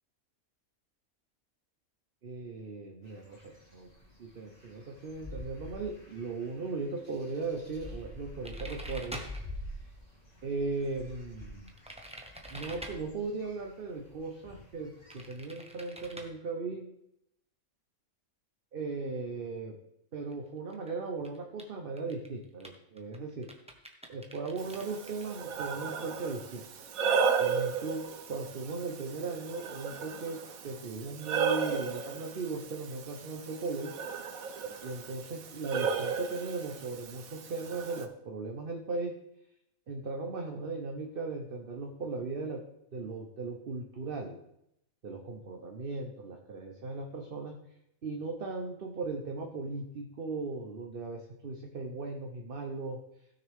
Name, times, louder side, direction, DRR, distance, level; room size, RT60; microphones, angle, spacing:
voice 1, 2.2-3.9 4.2-9.2 10.4-11.7 12.5-16.9 18.7-19.8 20.1-23.5 24.1-26.7 27.4-28.0 28.3-30.4 30.6-33.9 34.8-39.1 39.9-42.6 42.9-44.4 45.0-47.6 48.0-53.0, right 3 dB, 45° right, 2 dB, 1.0 m, -37 dB
sound 1, 3.0-15.4, left 1 dB, 30° left, 2.8 m, -48 dB
sound 2, 8.4-9.4 11.7-13.0 15.1-16.3 20.3-20.4 20.7-20.9 21.2-21.6 22.0-25.4, right 1 dB, 5° right, 0.9 m, -45 dB
Breathing, 24.6-38.1, right 6 dB, 80° right, 1.3 m, -35 dB
16.0 x 6.4 x 3.6 m, 0.80 s
omnidirectional pair, 1.5 m